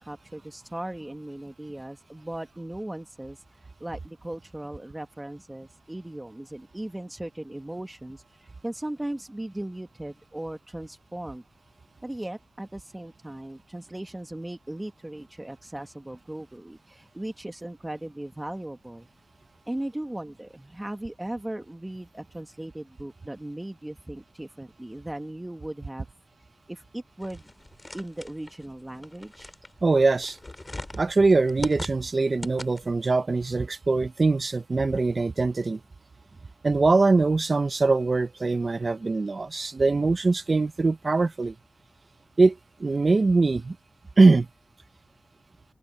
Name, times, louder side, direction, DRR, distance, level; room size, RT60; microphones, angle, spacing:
voice 1, 0.0-3.4 3.8-11.4 12.0-19.1 19.7-26.1 26.7-27.5 27.9-29.5, right 1 dB, 15° right, 1.7 m, -37 dB
sound 1, 27.2-33.0, left 2 dB, 30° left, 5.6 m, -41 dB
voice 2, 29.8-30.4 31.0-35.8 36.6-41.5 42.4-43.8 44.2-44.5, right 3 dB, 50° right, 0.8 m, -22 dB
cardioid pair, 55°, 0 cm